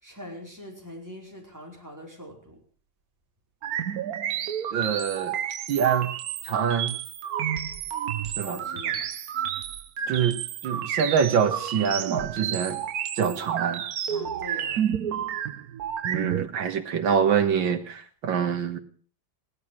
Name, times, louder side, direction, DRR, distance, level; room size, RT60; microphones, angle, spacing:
voice 1, 0.0-2.6 8.4-9.0 14.1-14.8, equal, 10° right, -1 dB, 4.9 m, -42 dB
sound 1, 3.6-16.5, right 9 dB, 60° right, 1.2 m, -30 dB
voice 2, 4.7-5.4 5.7-6.2 6.5-7.0 8.4-8.6 10.1-10.4 10.6-12.8 13.2-13.8 16.0-18.8, right 7 dB, 75° right, 7 dB, 2.2 m, -25 dB
17.0 x 12.0 x 6.2 m, 0.43 s
omnidirectional pair, 2.1 m